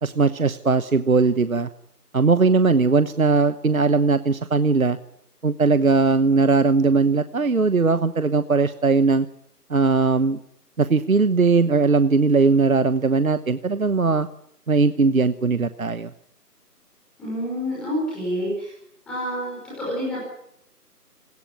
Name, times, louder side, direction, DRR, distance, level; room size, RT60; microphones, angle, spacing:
voice 1, 0.0-1.7 2.1-5.0 5.4-9.3 9.7-10.4 10.8-14.3 14.7-16.1, right 4 dB, 55° right, 13 dB, 1.2 m, -19 dB
voice 2, 17.2-18.7 19.1-20.2, equal, ahead, -7 dB, 5.4 m, -28 dB
27.0 x 18.0 x 9.5 m, 0.78 s
figure-of-eight pair, 175°, 48 cm